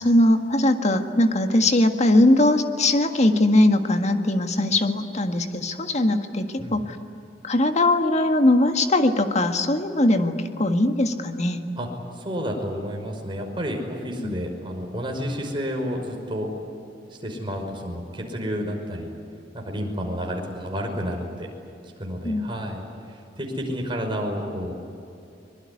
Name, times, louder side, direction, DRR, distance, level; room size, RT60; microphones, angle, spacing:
voice 1, 0.0-7.0 7.4-11.6 14.2-14.4 18.6-18.7 22.2-22.5, left 1 dB, 40° left, 6 dB, 1.8 m, -20 dB
voice 2, 12.2-16.5 17.2-19.1 19.5-21.5 22.0-22.8 23.1-24.8, equal, 30° right, 1 dB, 5.5 m, -30 dB
24.5 x 22.5 x 9.8 m, 2.7 s
head